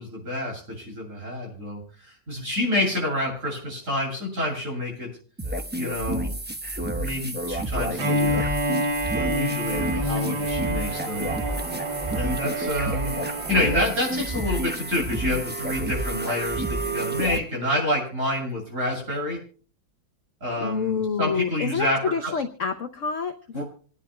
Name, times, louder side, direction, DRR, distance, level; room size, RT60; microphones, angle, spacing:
voice 1, 0.0-5.1 5.8-6.3 6.9-8.5 9.1-11.3 12.1-13.2 13.5-19.4 20.4-22.3 23.5-23.6, left 1 dB, 40° right, -2 dB, 7.9 m, -28 dB
sound 1, 5.4-17.4, right 1 dB, 15° right, 0.4 m, -30 dB
Bowed string instrument, 8.0-14.0, equal, 80° right, 2.1 m, -28 dB
voice 2, 20.6-23.6, left 6 dB, 60° left, 6 dB, 0.9 m, -28 dB
27.5 x 10.5 x 2.2 m, 0.44 s
omnidirectional pair, 2.0 m